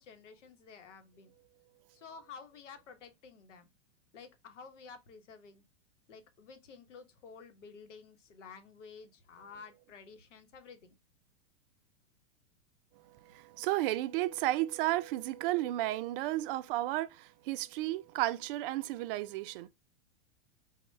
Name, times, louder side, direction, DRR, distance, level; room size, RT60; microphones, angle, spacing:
voice 1, 0.0-1.3 1.9-3.7 4.1-5.6 6.1-10.9, left 5 dB, 90° left, 0.9 m, -52 dB
voice 2, 13.0-19.7, right 16 dB, 50° right, 0.4 m, -33 dB
4.2 x 2.1 x 3.1 m
hypercardioid pair, 125°, 35 cm